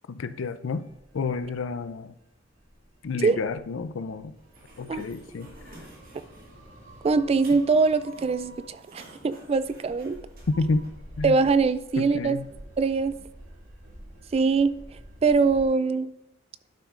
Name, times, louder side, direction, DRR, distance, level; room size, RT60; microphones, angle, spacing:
voice 1, 0.1-0.9 1.1-2.1 3.0-4.3 4.8-5.7 10.5-10.8 11.2-11.4 12.0-12.5, left 3 dB, 80° left, 12 dB, 0.5 m, -30 dB
sound 1, 0.8-15.6, right 1 dB, 70° right, 2.4 m, -49 dB
Sliding door, 4.4-10.9, right 2 dB, 50° right, 1.9 m, -50 dB
voice 2, 7.0-10.2 11.2-12.4 12.8-13.2 14.3-14.7 15.2-16.1, right 4 dB, 30° right, 14 dB, 0.3 m, -23 dB
11.5 x 6.1 x 2.5 m, 0.90 s
head